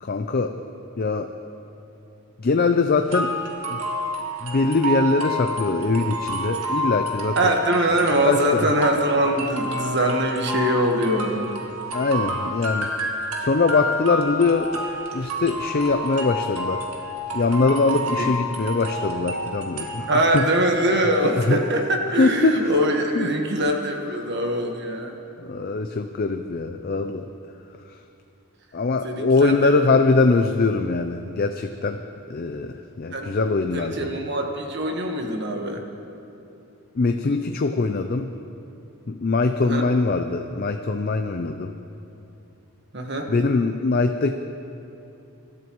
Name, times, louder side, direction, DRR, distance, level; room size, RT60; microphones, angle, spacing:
voice 1, 0.0-0.5 1.0-1.3 2.4-3.3 3.7-3.8 4.4-7.4 8.3-8.7 11.9-12.9 13.4-14.7 15.1-16.9 17.3-20.5 21.3-21.6 22.1-22.8 23.1-23.3 24.2-24.3 25.4-27.3 28.7-32.0 32.3-34.1 37.0-38.3 39.1-41.7 43.3-44.3, left 3 dB, 45° left, 6 dB, 0.4 m, -22 dB
sound 1, 3.1-21.0, equal, 85° right, 1.8 m, -30 dB
voice 2, 7.3-11.5 18.2-18.3 20.1-25.1 29.0-29.8 33.1-33.3 33.7-35.8 39.6-39.8 42.9-43.3, right 1 dB, 50° right, 2 dB, 1.4 m, -23 dB
24.5 x 12.5 x 3.1 m, 2.8 s
head